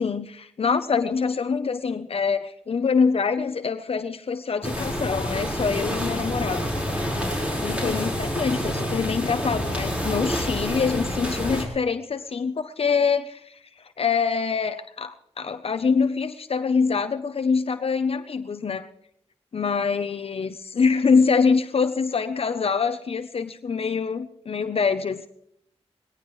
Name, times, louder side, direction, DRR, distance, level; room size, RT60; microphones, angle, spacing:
voice 1, 0.0-6.6 7.6-13.6 14.0-18.9 19.5-25.3, left 5 dB, 60° left, 8 dB, 0.7 m, -24 dB
sound 1, 4.6-11.6, equal, 10° right, 4.7 m, -28 dB
21.0 x 18.0 x 3.2 m, 0.76 s
wide cardioid pair, 120°, 11 cm